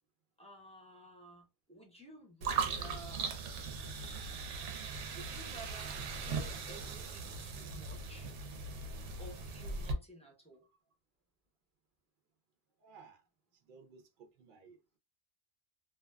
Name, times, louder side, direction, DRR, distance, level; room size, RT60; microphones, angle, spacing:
voice 1, 0.4-3.4 5.1-8.3 9.2-10.6, right 1 dB, 5° left, 0.5 m, -53 dB
sound 1, 2.4-9.9, right 5 dB, 85° right, 0.9 m, -39 dB
voice 2, 12.8-13.2 13.5-14.8, right 5 dB, 60° right, 0.6 m, -58 dB
2.7 x 2.3 x 2.2 m
omnidirectional pair, 1.2 m